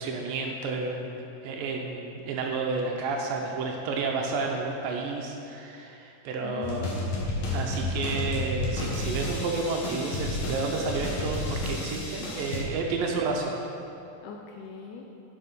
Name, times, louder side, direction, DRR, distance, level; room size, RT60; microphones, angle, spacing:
voice 1, 0.0-6.9 7.5-13.5, right 3 dB, 80° right, 1 dB, 2.4 m, -31 dB
voice 2, 6.4-7.8 14.2-15.1, left 6 dB, 85° left, 1 dB, 1.8 m, -41 dB
sound 1, 6.6-12.6, left 2 dB, 60° left, 2.3 m, -31 dB
8.9 x 5.5 x 5.5 m, 2.9 s
omnidirectional pair, 4.1 m